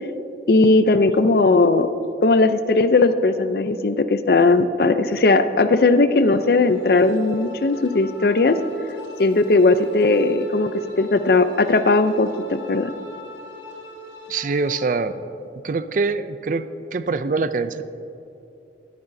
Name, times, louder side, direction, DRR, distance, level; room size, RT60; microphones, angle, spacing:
voice 1, 0.5-1.9 2.2-8.6 9.2-10.7 11.0-12.9, left 3 dB, 55° left, 11 dB, 0.5 m, -17 dB
sound 1, 6.1-15.0, left 2 dB, 85° left, 1.2 m, -41 dB
voice 2, 14.3-15.3 15.6-16.7 16.9-17.8, right 4 dB, 45° right, 13 dB, 0.4 m, -24 dB
20.0 x 9.6 x 2.7 m, 2.8 s
head